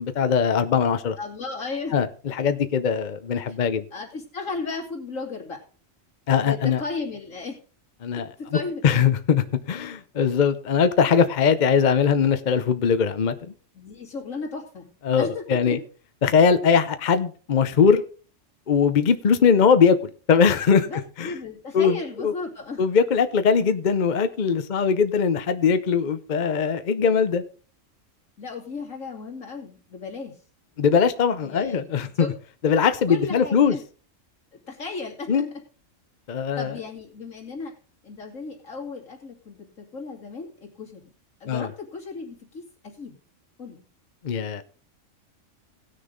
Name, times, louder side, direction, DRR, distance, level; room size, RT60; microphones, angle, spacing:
voice 1, 0.0-1.2 1.9-3.8 6.3-6.8 8.0-8.6 8.8-13.5 15.0-15.8 16.2-18.0 18.7-20.0 20.3-20.9 21.2-21.3 21.7-22.0 22.2-22.3 22.8-27.4 30.8-32.3 32.6-33.8 35.3-35.5 36.3-36.8 41.5-41.7 44.2-44.6, left 6 dB, 45° left, 0.7 m, -21 dB
voice 2, 1.2-1.9 3.5-3.6 3.9-5.6 6.4-7.6 8.4-8.9 13.7-14.9 15.1-15.8 20.8-22.8 28.4-30.3 31.4-32.3 33.1-33.8 34.5-35.4 36.6-37.7 38.0-41.1 41.4-43.2 43.6-43.8, left 4 dB, 75° left, 3.1 m, -35 dB
18.0 x 6.5 x 3.9 m
omnidirectional pair, 1.4 m